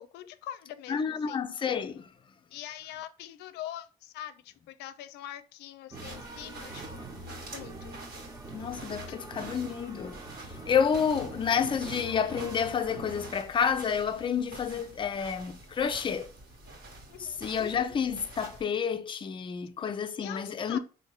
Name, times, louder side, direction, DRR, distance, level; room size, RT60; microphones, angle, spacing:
voice 1, 0.0-1.4 2.5-8.0 17.1-17.4 20.2-20.8, left 12 dB, 80° left, 0.5 m, -43 dB
voice 2, 0.9-2.1 8.5-16.3 17.2-20.8, left 7 dB, 30° left, 0.4 m, -30 dB
sound 1, 5.9-13.4, right 2 dB, 20° right, 0.6 m, -44 dB
sound 2, 5.9-18.6, right 2 dB, 60° right, 1.4 m, -48 dB
4.3 x 2.7 x 3.0 m
cardioid pair, 110°, 17 cm